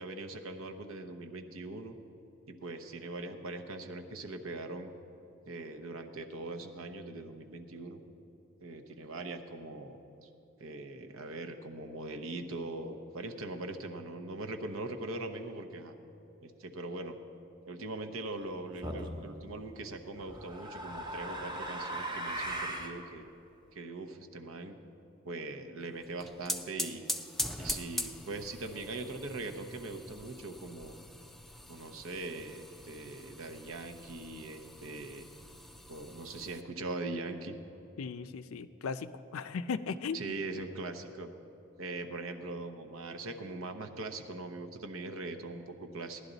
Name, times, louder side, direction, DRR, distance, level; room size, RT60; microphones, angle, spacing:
voice 1, 0.0-2.0 2.5-4.9 5.5-8.0 8.6-10.3 10.6-16.0 16.4-17.2 17.7-23.2 23.7-24.8 25.2-27.1 27.6-31.0 31.7-35.3 35.9-37.6 40.1-41.3 41.8-46.2, right 2 dB, 80° right, 6 dB, 0.8 m, -41 dB
sound 1, 18.8-19.2 20.2-23.0, right 1 dB, 20° right, 1.0 m, -38 dB
sound 2, 26.0-36.6, left 1 dB, ahead, 0.3 m, -42 dB
voice 2, 38.0-40.3, left 5 dB, 90° left, 12 dB, 0.5 m, -37 dB
16.5 x 11.0 x 4.0 m, 2.9 s
head